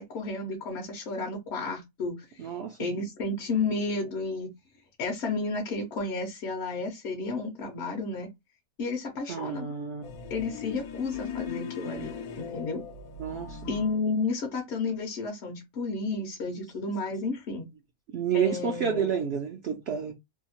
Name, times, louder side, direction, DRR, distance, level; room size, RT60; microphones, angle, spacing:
voice 1, 0.0-2.5 2.8-4.5 5.0-8.3 8.8-9.7 10.3-12.8 13.7-17.7 18.3-19.1, left 3 dB, 60° left, 0.8 m, -32 dB
voice 2, 2.4-2.8 9.3-10.1 13.2-13.6 18.1-20.1, right 7 dB, 65° right, 0.6 m, -29 dB
sound 1, 10.0-14.0, left 6 dB, 90° left, 1.1 m, -39 dB
2.7 x 2.2 x 2.8 m
omnidirectional pair, 1.5 m